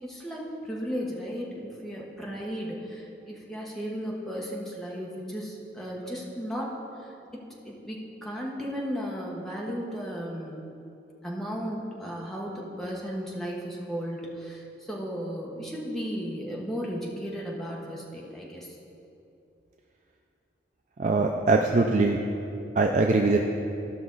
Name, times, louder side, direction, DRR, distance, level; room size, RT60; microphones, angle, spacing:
voice 1, 0.0-6.7 7.7-10.6 11.2-14.6 14.9-18.7, equal, ahead, -4 dB, 1.1 m, -35 dB
voice 2, 21.0-22.2 22.8-23.4, right 3 dB, 40° right, 2 dB, 0.4 m, -22 dB
14.5 x 5.9 x 3.9 m, 2.7 s
head